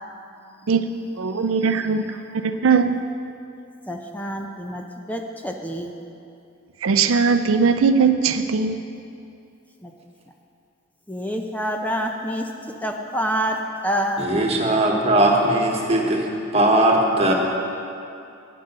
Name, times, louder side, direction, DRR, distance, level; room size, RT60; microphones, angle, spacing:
voice 1, 1.2-3.0 6.8-8.8, right 5 dB, 85° right, 8 dB, 0.5 m, -20 dB
voice 2, 3.9-5.9 9.8-9.9 11.1-12.5 12.8-14.2, equal, 10° left, 2 dB, 0.6 m, -27 dB
voice 3, 14.2-16.3 16.5-17.3, right 1 dB, 30° right, 0 dB, 1.5 m, -19 dB
10.0 x 9.5 x 6.7 m, 2.6 s
head